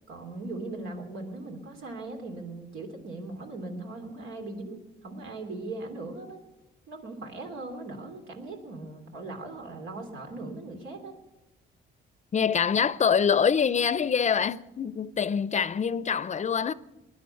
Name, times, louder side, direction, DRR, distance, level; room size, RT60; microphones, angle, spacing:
voice 1, 0.1-6.4 6.9-11.2, right 2 dB, 85° right, 3.1 m, -39 dB
voice 2, 12.3-16.7, left 7 dB, 35° left, 0.6 m, -25 dB
20.0 x 10.5 x 6.9 m
cardioid pair, 90°, 20 cm